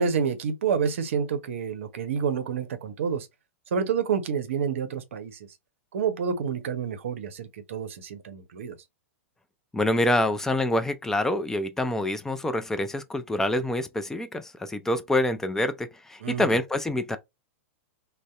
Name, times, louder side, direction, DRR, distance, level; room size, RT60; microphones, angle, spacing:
voice 1, 0.0-3.3 3.7-5.5 5.9-8.8 16.2-16.5, right 6 dB, 70° right, 0.6 m, -28 dB
voice 2, 9.7-17.2, left 1 dB, 5° left, 0.4 m, -26 dB
2.6 x 2.0 x 2.3 m
hypercardioid pair, 110°, 7 cm